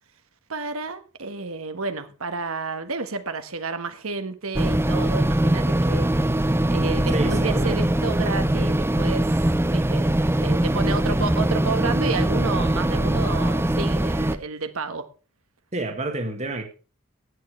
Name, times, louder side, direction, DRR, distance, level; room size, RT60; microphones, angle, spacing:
voice 1, 0.5-6.1 6.3-9.4 9.7-10.1 10.4-15.1, right 4 dB, 75° right, 1.4 m, -31 dB
sound 1, 4.5-14.4, right 1 dB, 10° right, 0.6 m, -22 dB
voice 2, 7.1-7.8 15.7-16.6, right 2 dB, 35° right, 1.8 m, -28 dB
16.0 x 9.4 x 3.3 m
head